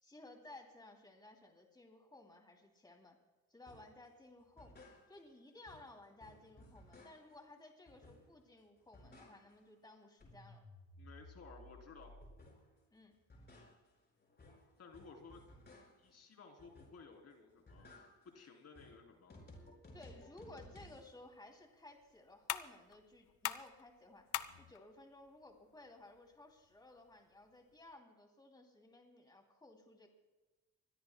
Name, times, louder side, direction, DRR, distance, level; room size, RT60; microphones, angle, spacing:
voice 1, 0.0-3.2 3.5-10.6 12.9-13.2 19.9-30.1, left 2 dB, 15° left, 3 dB, 2.7 m, -58 dB
sound 1, 3.7-4.0 4.4-5.4 5.7-7.5 7.9-8.5 8.8-9.7 10.0-12.8 13.1-16.2 16.6-17.2 17.5-21.1, left 1 dB, 35° left, 5.2 m, -59 dB
voice 2, 11.0-12.1 14.8-15.4 16.0-17.9 18.3-19.3, left 4 dB, 55° left, 3 dB, 3.3 m, -56 dB
sound 2, 21.0-28.0, left 13 dB, 90° left, 0.6 m, -47 dB
24.5 x 20.5 x 2.2 m, 1.2 s
cardioid pair, 90°, 30 cm